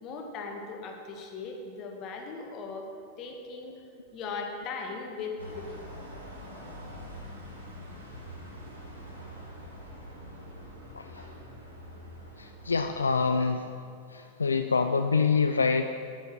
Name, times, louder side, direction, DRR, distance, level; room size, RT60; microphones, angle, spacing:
voice 1, 0.0-2.9 3.2-3.8 4.1-5.9, left 4 dB, 35° left, 3 dB, 1.4 m, -38 dB
sound 1, 5.4-13.2, equal, 80° right, 2.2 m, -44 dB
voice 2, 12.4-13.7 14.1-15.9, left 5 dB, 75° left, 7 dB, 0.3 m, -26 dB
9.5 x 8.6 x 4.7 m, 2.5 s
figure-of-eight pair, 90°, 0 cm